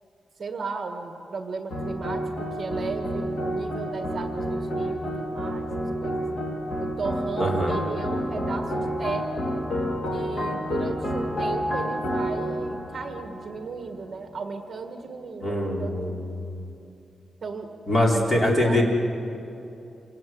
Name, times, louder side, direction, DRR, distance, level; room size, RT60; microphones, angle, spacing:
voice 1, 0.4-5.7 6.0-6.5 6.8-9.4 10.1-16.5 17.4-17.7 18.1-18.8, right 4 dB, 35° right, 5 dB, 1.7 m, -36 dB
sound 1, 1.7-14.2, equal, 55° left, 3.7 m, -29 dB
voice 2, 7.4-7.8 15.4-16.5 17.9-18.8, left 1 dB, 30° left, -2 dB, 4.4 m, -23 dB
27.5 x 26.5 x 7.8 m, 2.8 s
wide cardioid pair, 160°, 0 cm